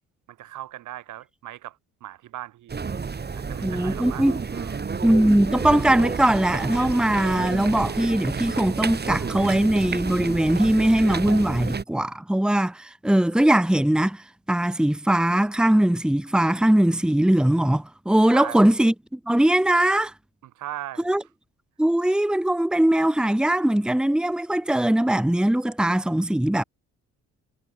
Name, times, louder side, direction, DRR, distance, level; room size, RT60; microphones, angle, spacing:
voice 1, 0.3-3.0 3.3-4.9 18.3-18.7 20.4-21.1, right 13 dB, 80° right, 3.7 m, -39 dB
sound 1, 2.7-11.8, right 5 dB, 35° right, 3.3 m, -30 dB
voice 2, 3.6-4.4 5.0-20.1 21.0-21.2 21.8-26.6, right 1 dB, 5° right, 1.3 m, -21 dB
cardioid pair, 90°, 30 cm